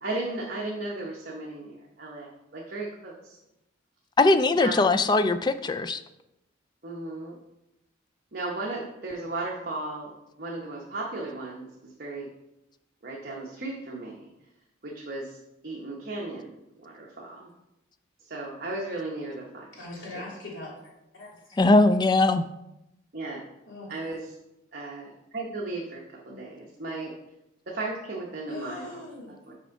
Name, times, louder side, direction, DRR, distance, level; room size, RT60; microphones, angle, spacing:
voice 1, 0.0-3.4 4.5-4.9 6.8-7.4 8.3-10.1 10.4-12.3 13.0-14.3 14.8-15.4 15.6-16.5 16.8-17.5 18.2-19.7 20.1-20.2 23.1-23.4 23.9-24.3 24.7-27.1 27.7-28.9 29.5-29.6, right 2 dB, 50° right, -3 dB, 1.0 m, -35 dB
voice 2, 4.2-6.0 21.6-22.5, left 2 dB, 20° left, 11 dB, 0.3 m, -20 dB
voice 3, 19.7-20.8 21.1-21.6 23.7-23.9 26.3-26.4 28.5-29.3, left 2 dB, 80° left, -4 dB, 2.6 m, -41 dB
6.2 x 4.5 x 5.2 m, 0.89 s
head